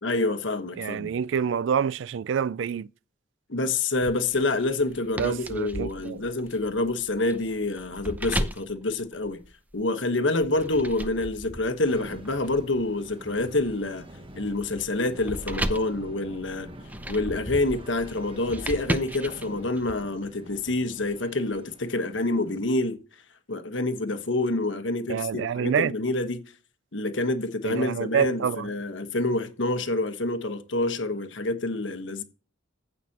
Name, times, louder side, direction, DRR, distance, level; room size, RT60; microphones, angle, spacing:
voice 1, 0.0-1.1 3.5-9.4 9.7-14.1 14.4-16.7 17.1-23.0 23.5-26.4 26.9-32.2, left 2 dB, 75° left, 1.3 m, -27 dB
voice 2, 0.8-2.9 5.2-6.2 25.1-25.9 27.6-28.7, right 7 dB, 70° right, 0.3 m, -27 dB
sound 1, 4.0-9.8 10.4-19.9, right 1 dB, 10° right, 0.6 m, -36 dB
sound 2, 11.8-22.5, right 1 dB, 30° right, 1.1 m, -47 dB
15.5 x 6.0 x 2.9 m
head